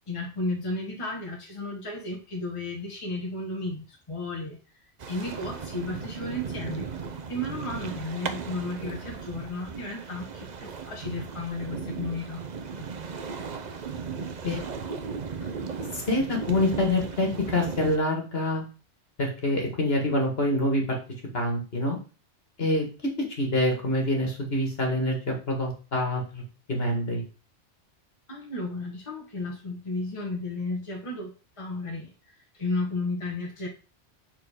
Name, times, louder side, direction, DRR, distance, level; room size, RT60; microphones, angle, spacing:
voice 1, 0.1-4.6 5.1-6.9 7.3-12.4 28.3-33.7, left 2 dB, 25° left, 0 dB, 1.4 m, -33 dB
sound 1, 5.0-18.0, right 5 dB, 40° right, 0.8 m, -36 dB
voice 2, 15.9-18.6 19.2-21.0 21.3-22.0 22.6-22.9 23.4-26.4 26.7-27.2, left 1 dB, 55° left, 1 dB, 2.1 m, -26 dB
6.9 x 4.4 x 5.0 m, 0.35 s
omnidirectional pair, 1.2 m